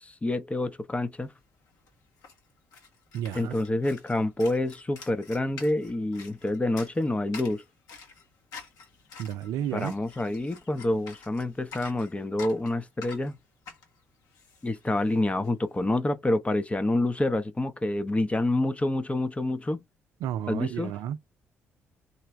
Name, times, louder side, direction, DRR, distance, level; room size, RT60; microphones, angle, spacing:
voice 1, 0.0-1.3 3.3-7.6 9.7-13.3 14.6-19.8 20.5-20.9, left 1 dB, 20° left, 0.8 m, -27 dB
sound 1, 1.4-1.5 1.6-15.5, left 5 dB, 60° left, 1.4 m, -48 dB
voice 2, 3.1-3.5 9.2-10.0 20.2-21.2, right 10 dB, 60° right, 0.4 m, -32 dB
4.2 x 3.3 x 3.0 m
figure-of-eight pair, 45°, 7 cm